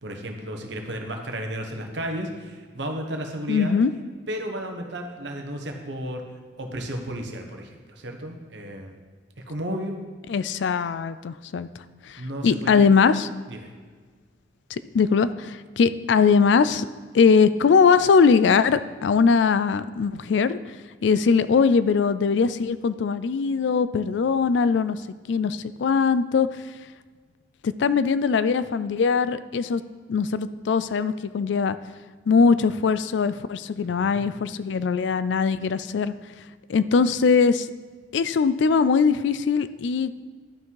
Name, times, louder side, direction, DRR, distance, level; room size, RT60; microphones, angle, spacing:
voice 1, 0.0-3.7 4.3-6.2 6.6-9.0 9.5-10.0 12.2-12.9 13.5-13.7 33.8-34.2, equal, 75° right, 3 dB, 1.2 m, -33 dB
voice 2, 3.5-3.9 10.3-11.7 12.0-13.3 14.7-16.9 17.1-20.6 21.0-25.0 25.3-26.5 27.6-29.8 30.1-31.8 32.3-36.1 36.7-37.7 38.1-40.2, left 5 dB, 75° left, 14 dB, 0.4 m, -21 dB
11.5 x 5.9 x 4.8 m, 1.5 s
head